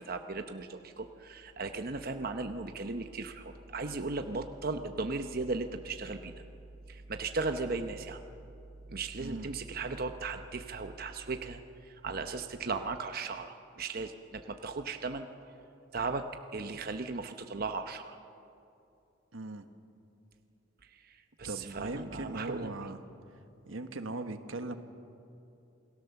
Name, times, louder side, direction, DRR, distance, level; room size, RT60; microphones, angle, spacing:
voice 1, 0.0-6.3 6.9-8.2 8.9-15.3 15.9-16.3 16.5-18.2 20.9-22.7, right 3 dB, 50° right, 7 dB, 0.9 m, -37 dB
voice 2, 9.2-9.5 19.3-19.7 21.4-23.0 23.7-24.7, right 2 dB, 85° right, 8 dB, 1.4 m, -39 dB
28.0 x 19.0 x 7.0 m, 2.7 s
head